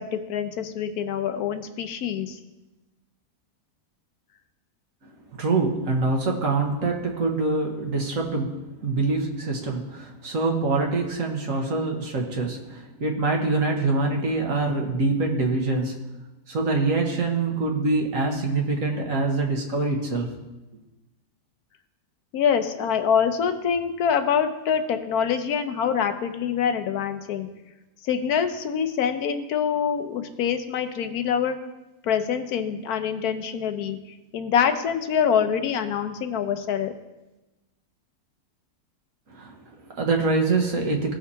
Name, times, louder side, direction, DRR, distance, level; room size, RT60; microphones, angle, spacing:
voice 1, 0.0-2.4 22.3-27.5 28.0-31.6 32.0-34.0 34.3-36.9, left 7 dB, 85° left, 8 dB, 1.3 m, -25 dB
voice 2, 5.0-16.0 16.5-20.3 39.3-41.1, right 3 dB, 65° right, 1 dB, 1.6 m, -25 dB
16.5 x 5.9 x 2.8 m, 1.0 s
omnidirectional pair, 1.6 m